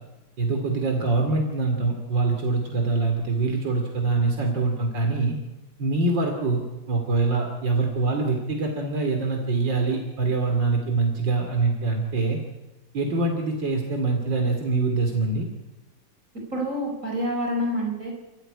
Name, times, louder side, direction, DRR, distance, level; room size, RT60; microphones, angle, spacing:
voice 1, 0.4-5.4 5.8-6.6 6.9-12.4 12.9-15.5, right 3 dB, 80° right, 3 dB, 3.4 m, -24 dB
voice 2, 16.3-18.1, equal, 45° right, 1 dB, 4.9 m, -27 dB
29.0 x 14.0 x 9.8 m, 1.1 s
omnidirectional pair, 2.0 m